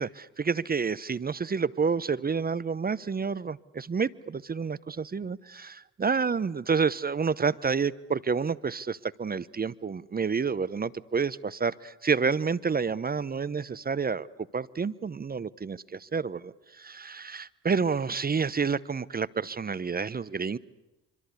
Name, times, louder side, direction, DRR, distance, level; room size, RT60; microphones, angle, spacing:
voice 1, 0.0-14.3 14.5-20.6, right 5 dB, 25° right, 19 dB, 0.8 m, -29 dB
25.5 x 25.0 x 8.3 m, 1.0 s
hypercardioid pair, 55°, 36 cm